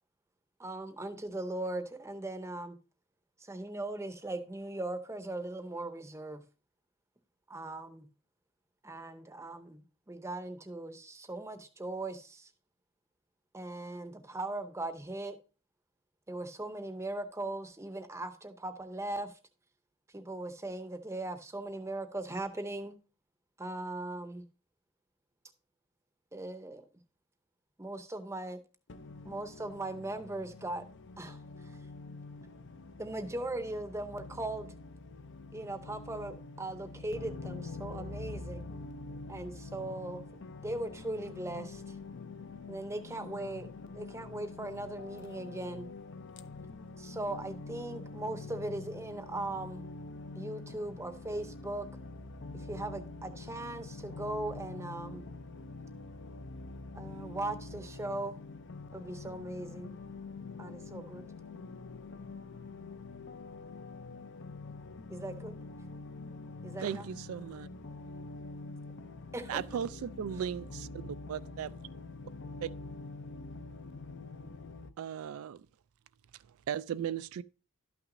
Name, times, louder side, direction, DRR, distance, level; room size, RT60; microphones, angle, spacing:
voice 1, 0.6-2.8 3.4-6.4 7.5-8.1 8.8-12.5 13.5-15.4 16.3-19.3 20.1-23.0 23.6-24.4 26.3-26.9 27.8-28.6 29.2-30.8 31.2-31.4 33.0-34.7 35.5-38.6 39.3-40.2 40.6-41.9 42.7-43.7 43.9-45.9 47.0-49.8 50.4-51.9 52.5-55.3 56.9-58.4 58.9-60.0 60.6-61.3 65.1-65.6 66.6-67.0 69.3-69.6, right 2 dB, 15° right, 0.7 m, -39 dB
voice 2, 28.9-29.6 30.6-30.7 31.1-33.3 34.2-34.3 34.7-74.9, left 3 dB, 60° left, 0.6 m, -45 dB
voice 3, 66.8-67.7 69.5-71.8 72.6-72.7 75.0-75.7 76.7-77.4, right 8 dB, 85° right, 0.3 m, -37 dB
12.0 x 5.9 x 2.6 m
head